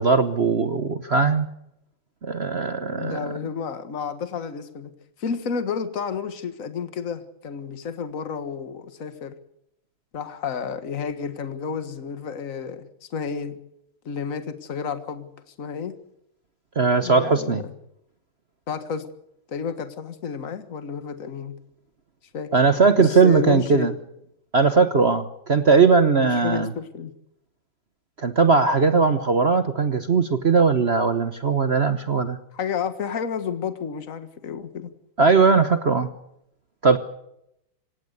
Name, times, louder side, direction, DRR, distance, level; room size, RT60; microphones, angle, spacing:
voice 1, 0.0-1.5 2.2-3.3 16.8-17.6 22.5-23.9 24.5-26.7 28.2-32.4 35.2-36.1 36.8-37.0, right 4 dB, 45° right, 10 dB, 0.8 m, -19 dB
voice 2, 3.0-4.9 5.2-9.4 10.1-13.6 14.1-16.0 17.0-17.7 18.7-19.1 19.5-21.5 22.3-22.5 23.0-23.9 26.2-27.1 32.5-34.9, left 6 dB, 40° left, 10 dB, 1.8 m, -31 dB
26.0 x 17.5 x 6.8 m, 0.80 s
omnidirectional pair, 2.4 m